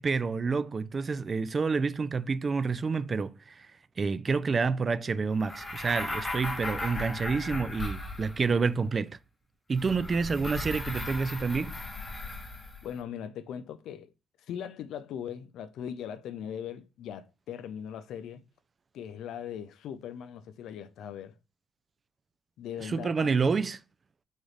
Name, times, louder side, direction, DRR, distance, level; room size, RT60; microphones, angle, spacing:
voice 1, 0.0-3.7 4.0-9.2 9.7-11.8 22.8-23.8, right 4 dB, 35° right, 0.3 m, -28 dB
sound 1, 5.4-8.6 9.7-12.9, left 2 dB, 20° left, 0.9 m, -37 dB
voice 2, 12.8-14.1 14.5-18.4 18.9-21.3 22.6-23.4, left 9 dB, 80° left, 0.4 m, -39 dB
3.9 x 2.5 x 3.1 m
cardioid pair, 90°, 0 cm